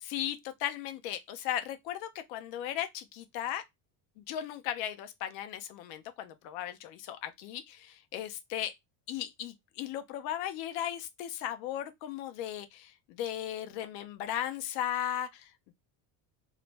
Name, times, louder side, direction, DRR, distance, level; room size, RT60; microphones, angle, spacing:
voice 1, 0.0-3.6 4.2-8.7 9.1-15.7, left 11 dB, 85° left, 0.6 m, -36 dB
2.4 x 2.0 x 3.2 m
supercardioid pair, 115°, 48 cm